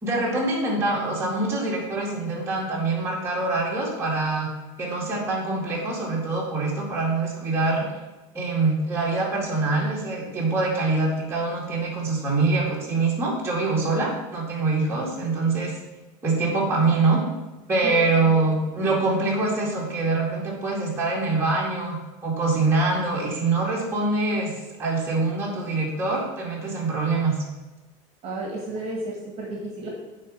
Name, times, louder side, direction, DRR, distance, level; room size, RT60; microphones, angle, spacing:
voice 1, 0.0-4.5 4.8-7.8 8.3-15.8 16.2-17.2 17.7-22.0 22.2-24.5 24.8-27.4, right 3 dB, 15° right, -5 dB, 2.1 m, -24 dB
voice 2, 28.2-29.9, right 2 dB, 40° right, -2 dB, 1.8 m, -32 dB
8.4 x 3.9 x 5.3 m, 1.1 s
supercardioid pair, 145°, 16 cm